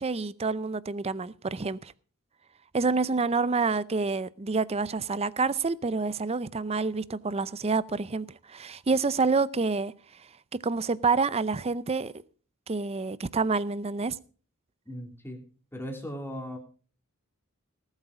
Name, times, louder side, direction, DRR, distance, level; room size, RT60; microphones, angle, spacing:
voice 1, 0.0-1.9 2.7-9.9 10.6-12.1 12.7-14.2, right 4 dB, 30° right, 0.5 m, -28 dB
voice 2, 14.9-15.4 15.7-16.6, equal, 10° left, 2.9 m, -37 dB
18.5 x 8.2 x 4.9 m
head